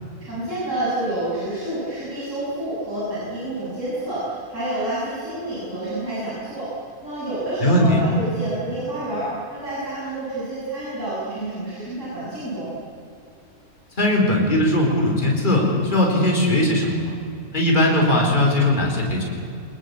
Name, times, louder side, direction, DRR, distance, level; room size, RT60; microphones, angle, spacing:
voice 1, 0.2-6.7 7.0-12.7, right 1 dB, 55° right, -9 dB, 7.6 m, -28 dB
voice 2, 7.6-8.0 14.0-17.1 17.5-19.2, left 1 dB, 30° left, -1 dB, 4.5 m, -19 dB
25.0 x 20.5 x 8.5 m, 2.5 s
omnidirectional pair, 1.6 m